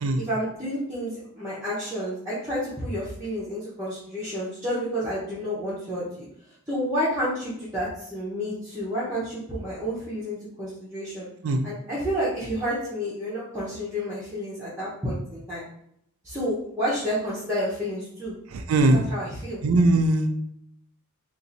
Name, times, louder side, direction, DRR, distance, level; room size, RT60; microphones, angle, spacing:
voice 1, 0.2-6.3 6.7-11.3 11.6-15.6 16.2-18.3 18.9-19.6, equal, 10° right, -10 dB, 0.9 m, -30 dB
voice 2, 18.5-19.1 19.6-20.3, right 2 dB, 70° right, 6 dB, 0.4 m, -20 dB
2.8 x 2.6 x 3.9 m, 0.72 s
head